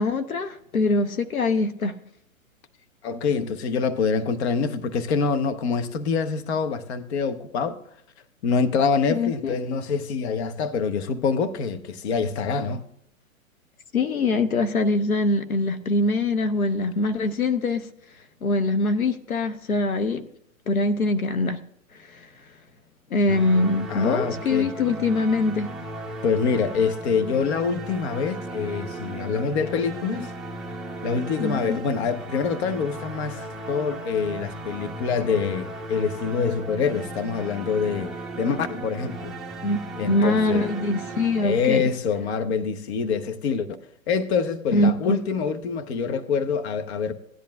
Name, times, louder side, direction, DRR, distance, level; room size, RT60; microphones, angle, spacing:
voice 1, 0.0-1.9 9.1-9.5 13.9-17.9 18.4-20.3 20.7-21.6 22.1-22.3 23.1-25.7 31.4-31.8 39.6-41.9 44.7-44.9, left 2 dB, 85° left, 1.0 m, -23 dB
voice 2, 3.0-7.8 8.4-12.8 23.9-24.7 26.2-30.3 31.0-39.3 40.0-40.7 41.4-43.7 44.1-47.1, left 5 dB, 50° left, 1.0 m, -25 dB
sound 1, 23.3-42.2, right 2 dB, ahead, 0.8 m, -36 dB
17.5 x 10.5 x 2.4 m
figure-of-eight pair, 120°, 41 cm